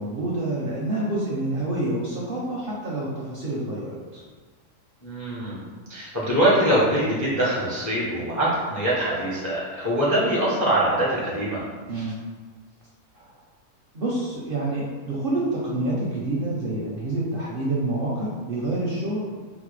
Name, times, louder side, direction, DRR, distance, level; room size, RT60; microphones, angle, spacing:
voice 1, 0.0-4.2 11.9-12.1 13.1-13.3 13.9-19.4, right 2 dB, 60° right, -5 dB, 0.6 m, -27 dB
voice 2, 5.0-5.6 5.9-11.7, right 1 dB, 25° left, -7 dB, 0.3 m, -23 dB
3.9 x 2.0 x 3.1 m, 1.5 s
omnidirectional pair, 1.4 m